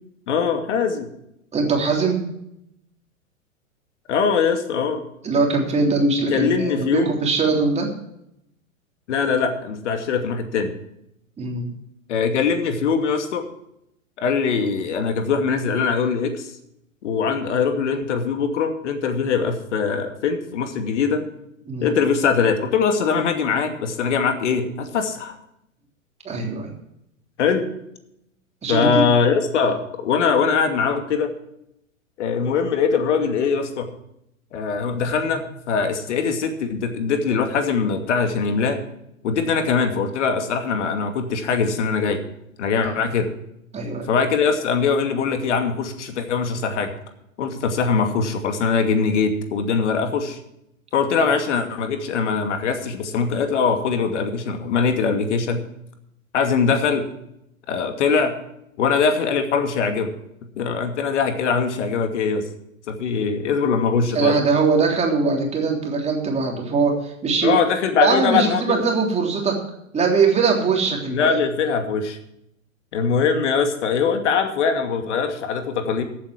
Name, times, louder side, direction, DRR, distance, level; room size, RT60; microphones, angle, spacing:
voice 1, 0.3-1.1 4.1-5.0 6.3-7.1 9.1-10.7 12.1-13.4 14.2-16.5 17.0-21.2 21.8-25.4 27.4-27.7 28.7-31.3 32.2-33.9 34.5-38.8 39.2-42.2 42.6-43.3 44.1-46.9 47.4-50.4 50.9-55.6 56.3-57.0 57.7-58.3 58.8-60.1 60.6-62.4 62.9-64.4 67.4-68.8 71.1-72.2 72.9-76.0, left 5 dB, 55° left, 6 dB, 2.6 m, -22 dB
voice 2, 1.5-2.3 5.2-7.9 11.4-11.7 21.7-22.0 26.2-26.7 28.6-29.1 42.8-43.0 43.7-44.1 64.1-67.5 68.0-69.6 69.9-71.4, right 4 dB, 15° right, 1 dB, 3.5 m, -21 dB
14.5 x 8.7 x 6.0 m, 0.78 s
figure-of-eight pair, 105°, 41 cm